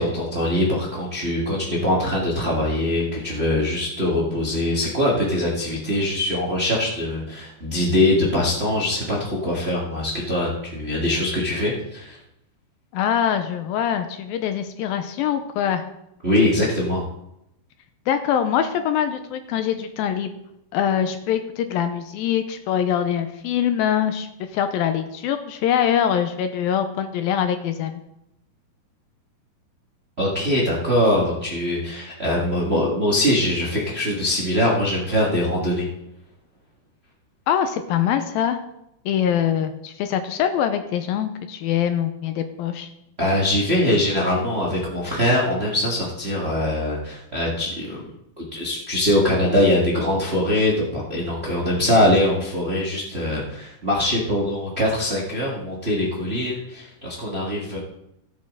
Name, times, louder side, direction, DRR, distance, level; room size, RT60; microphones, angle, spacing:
voice 1, 0.0-12.2 16.2-17.0 30.2-35.9 43.2-48.0 48.4-57.8, left 1 dB, 65° right, -4 dB, 0.6 m, -22 dB
voice 2, 12.9-15.8 18.1-20.3 20.7-24.3 24.5-28.0 37.5-38.6 39.1-42.9, left 9 dB, 80° left, 8 dB, 2.3 m, -23 dB
15.5 x 8.6 x 3.7 m, 0.82 s
omnidirectional pair, 4.5 m